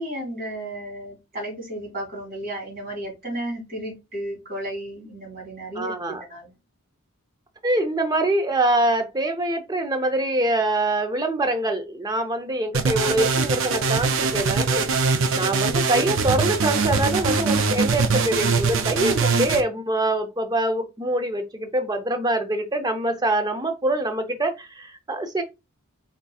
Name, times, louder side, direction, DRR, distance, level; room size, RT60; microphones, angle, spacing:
voice 1, 0.0-6.5, right 1 dB, 40° right, 2.4 m, -33 dB
voice 2, 5.8-6.2 7.6-25.4, right 1 dB, 20° right, 0.5 m, -24 dB
sound 1, 12.7-19.6, right 4 dB, 60° right, 0.5 m, -22 dB
4.1 x 3.6 x 2.3 m
head